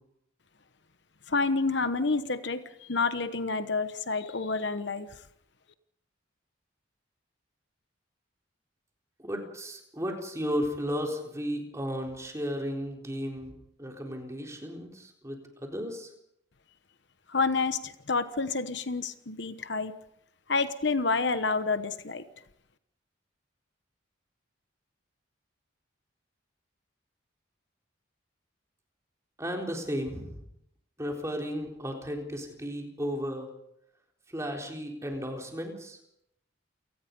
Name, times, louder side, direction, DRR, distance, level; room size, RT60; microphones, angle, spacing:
voice 1, 1.3-5.1 17.3-20.0 20.5-22.2, left 4 dB, 60° left, 11 dB, 1.1 m, -29 dB
voice 2, 9.2-13.5 13.8-16.1 29.4-30.4 31.0-33.5 34.3-36.0, equal, 15° right, 1 dB, 4.0 m, -34 dB
29.0 x 19.0 x 5.4 m, 0.77 s
head